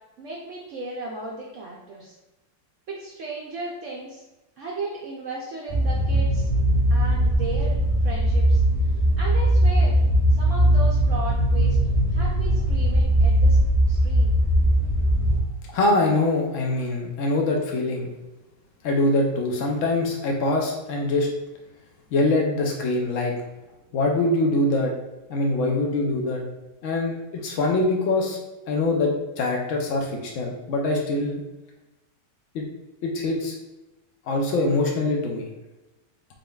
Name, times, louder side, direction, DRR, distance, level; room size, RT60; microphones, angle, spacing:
voice 1, 0.2-2.1 2.9-4.2 4.6-6.5 6.9-7.8 8.0-8.6 9.2-10.0 10.4-11.8 12.1-13.6 13.9-14.3, right 3 dB, 70° right, -3 dB, 0.7 m, -35 dB
sound 1, 5.7-15.4, right 1 dB, 40° left, 0.5 m, -20 dB
voice 2, 15.7-18.1 18.8-21.3 22.1-23.3 23.9-24.9 25.3-26.4 26.8-27.2 27.4-28.4 28.7-31.4 32.5-32.6 33.0-33.5 34.3-35.5, left 2 dB, 80° left, 0 dB, 0.6 m, -23 dB
3.7 x 3.7 x 2.3 m, 1.0 s
omnidirectional pair, 1.9 m